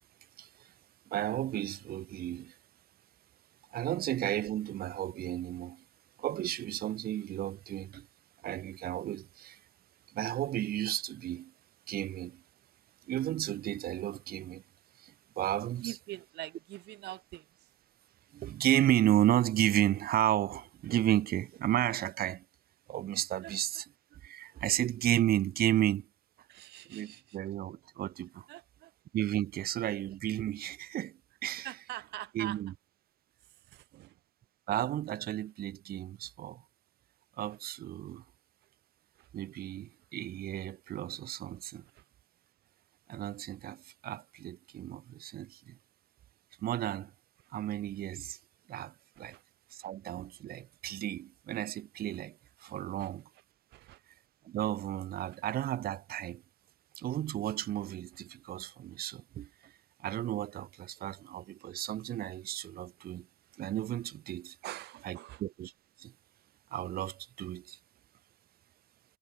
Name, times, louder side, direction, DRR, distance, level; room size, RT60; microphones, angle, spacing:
voice 1, 0.4-0.7 1.1-2.6 3.7-5.8 6.2-8.1 8.4-9.6 10.1-11.5 11.9-12.4 13.1-14.6 15.0-15.9 18.3-22.4 22.9-23.8 24.2-26.1 26.9-28.5 29.1-31.7 32.3-32.7 34.7-36.6 37.4-38.2 39.3-41.8 43.1-45.8 46.6-47.1 47.5-48.4 48.7-49.4 49.7-53.3 54.4-56.4 57.0-59.7 60.0-63.3 63.6-64.6 65.0-65.7 66.0-66.1 66.7-67.8, right 12 dB, 65° right, 2.2 m, -33 dB
voice 2, 15.8-17.5 23.4-23.5 24.1-24.3 26.5-27.4 28.5-28.9 29.6-29.7 31.6-32.6 33.4-34.2 37.5-37.6 39.2-39.3 41.9-42.0 49.3-49.4 49.8-49.9 53.0-53.1 53.7-54.0 55.2-55.4 61.0-61.1 63.5-63.6 64.6-65.4, right 16 dB, 80° right, 5.5 m, -45 dB
cardioid pair, 110°, 17 cm